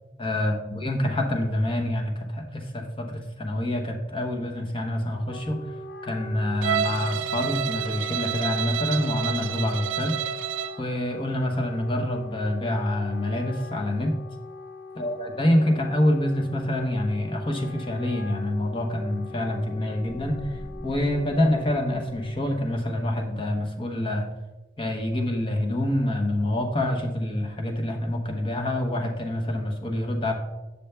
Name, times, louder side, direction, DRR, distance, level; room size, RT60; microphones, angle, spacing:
voice 1, 0.2-5.7 6.0-10.2 10.8-14.1 15.0-24.3 24.8-30.3, left 1 dB, 25° left, 2 dB, 1.0 m, -26 dB
Wind instrument woodwind instrument, 5.0-22.5, left 3 dB, 60° left, 0.6 m, -42 dB
Bowed string instrument, 6.6-10.8, right 9 dB, 80° right, 0.3 m, -29 dB
sound 1, 20.1-23.2, equal, ahead, 0.5 m, -43 dB
9.2 x 6.8 x 3.4 m, 1.1 s
head